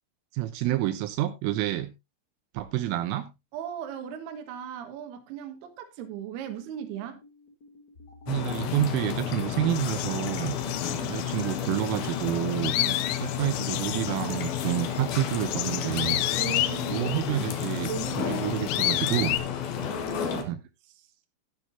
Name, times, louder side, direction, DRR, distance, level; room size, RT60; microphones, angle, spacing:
voice 1, 0.3-1.9 2.5-3.3 8.3-10.6 11.1-12.7 13.2-16.2 16.9-17.9 18.2-19.4 20.3-20.6, right 14 dB, 85° right, 3.3 m, -29 dB
voice 2, 3.5-7.2 10.6-11.3 12.8-13.1 16.2-19.0 19.8-20.6, right 9 dB, 60° right, 3.2 m, -39 dB
sound 1, 6.6-15.0, left 3 dB, 30° left, 1.7 m, -49 dB
sound 2, 8.3-20.4, left 9 dB, 60° left, 2.8 m, -32 dB
sound 3, 9.7-19.4, left 15 dB, 85° left, 2.5 m, -32 dB
12.5 x 10.5 x 2.7 m
omnidirectional pair, 5.9 m